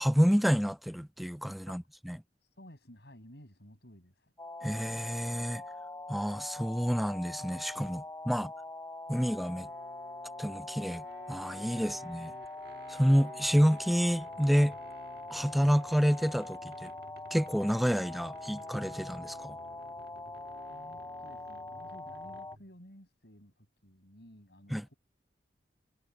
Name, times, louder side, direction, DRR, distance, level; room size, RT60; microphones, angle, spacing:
voice 1, 0.0-2.2 4.6-5.6 6.1-8.5 9.1-9.7 10.4-12.3 12.9-14.8 15.3-16.9 17.3-19.6 24.7-24.8, equal, ahead, 0.3 m, -28 dB
voice 2, 2.4-4.3 8.3-8.5 11.8-12.1 20.7-24.9, left 1 dB, 65° left, 7.6 m, -55 dB
sound 1, 4.4-22.6, left 2 dB, 15° left, 3.5 m, -43 dB
sound 2, 9.4-22.8, right 1 dB, 60° right, 1.7 m, -54 dB
head